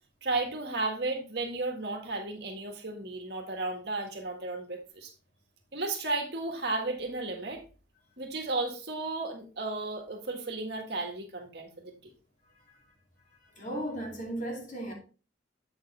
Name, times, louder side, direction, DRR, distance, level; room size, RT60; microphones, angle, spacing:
voice 1, 0.2-5.1 5.7-7.6 8.2-12.1, right 2 dB, 55° right, 1.7 m, -34 dB
voice 2, 13.6-14.9, right 1 dB, 40° left, 2.4 m, -35 dB
8.0 x 6.5 x 3.3 m
head